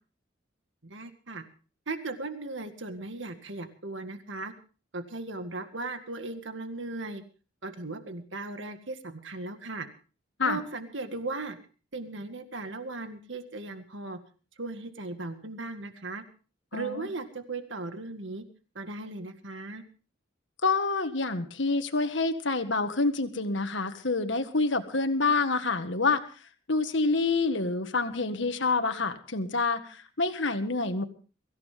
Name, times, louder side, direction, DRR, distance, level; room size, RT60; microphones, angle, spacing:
voice 1, 0.8-1.4 1.9-4.5 4.9-7.2 7.6-9.9 10.4-11.6 11.9-14.2 14.6-16.2 16.7-18.4 18.8-19.8, right 3 dB, 70° right, 7 dB, 1.9 m, -37 dB
voice 2, 16.7-17.1 20.6-26.2 26.7-31.0, left 3 dB, 65° left, 8 dB, 1.7 m, -27 dB
23.5 x 15.0 x 3.6 m, 0.37 s
head